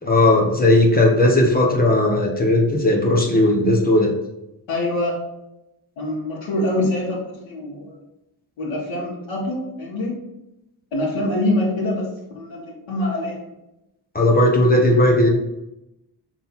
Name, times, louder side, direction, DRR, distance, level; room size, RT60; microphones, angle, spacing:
voice 1, 0.0-4.1 14.1-15.3, left 1 dB, 20° left, -1 dB, 1.1 m, -16 dB
voice 2, 4.7-5.2 6.0-7.9 8.6-10.2 10.9-12.1 12.3-13.4, left 1 dB, 80° left, -8 dB, 2.2 m, -24 dB
6.5 x 4.0 x 4.2 m, 0.90 s
cardioid pair, 130°, 45 cm